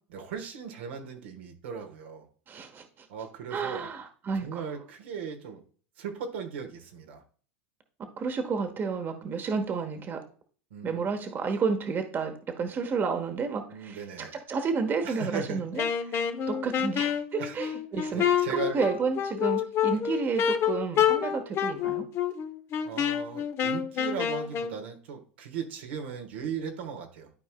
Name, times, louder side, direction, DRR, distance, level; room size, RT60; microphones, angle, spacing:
voice 1, 0.1-2.3 3.1-3.9 4.4-5.6 6.0-7.2 10.7-11.0 13.7-14.3 15.0-15.6 17.4-17.7 18.1-18.8 22.8-27.3, right 6 dB, 80° right, 4 dB, 1.4 m, -37 dB
voice 2, 2.5-3.1 3.5-4.6 8.2-10.2 10.8-16.2 16.5-22.1, right 5 dB, 35° right, 6 dB, 1.2 m, -31 dB
Wind instrument woodwind instrument, 15.8-24.8, left 9 dB, 45° left, 0.8 m, -28 dB
12.5 x 4.6 x 2.2 m, 0.42 s
hypercardioid pair, 95°, 6 cm